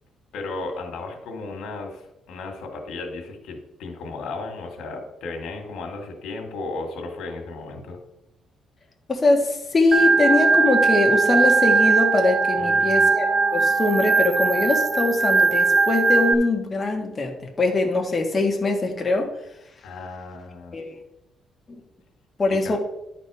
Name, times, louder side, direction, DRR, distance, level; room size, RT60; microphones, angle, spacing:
voice 1, 0.3-8.0 12.5-13.1 19.8-20.8 22.5-22.8, left 3 dB, 80° left, 3 dB, 1.9 m, -35 dB
voice 2, 9.1-13.3 13.5-19.3 20.7-20.9 21.7-21.8 22.4-22.8, left 2 dB, 25° left, 2 dB, 1.5 m, -22 dB
Organ, 9.9-16.3, right 4 dB, 30° right, 0.6 m, -19 dB
11.0 x 4.2 x 4.8 m, 0.88 s
cardioid pair, 125°, 0 cm